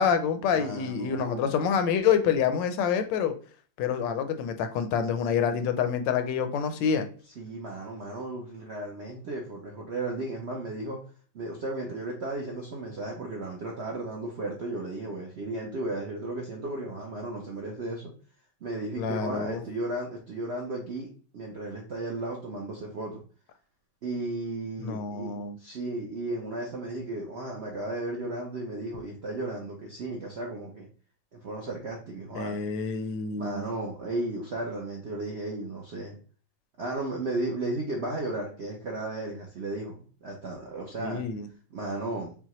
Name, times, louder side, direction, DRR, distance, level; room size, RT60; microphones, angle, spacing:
voice 1, 0.0-3.3 3.8-7.1 19.0-19.6 24.8-25.6 32.3-33.7 41.0-41.4, left 7 dB, 80° left, 1.2 m, -27 dB
voice 2, 0.5-1.6 7.4-11.0 11.3-18.1 18.6-23.2 24.0-30.9 31.3-32.6 33.4-36.1 36.8-41.2 41.7-42.4, right 2 dB, 65° right, 0.6 m, -34 dB
5.5 x 2.2 x 3.0 m
omnidirectional pair, 2.0 m